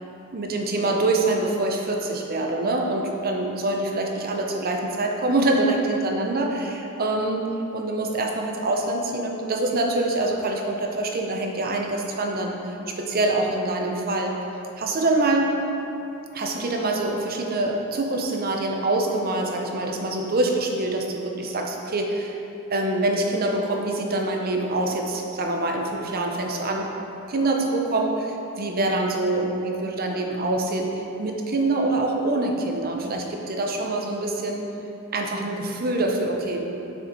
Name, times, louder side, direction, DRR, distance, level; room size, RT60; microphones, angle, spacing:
voice 1, 0.3-14.4 14.8-15.5 16.3-22.4 22.7-26.9 27.3-34.7 35.1-36.7, right 2 dB, 40° right, 2 dB, 0.7 m, -25 dB
7.1 x 6.4 x 4.5 m, 3.0 s
head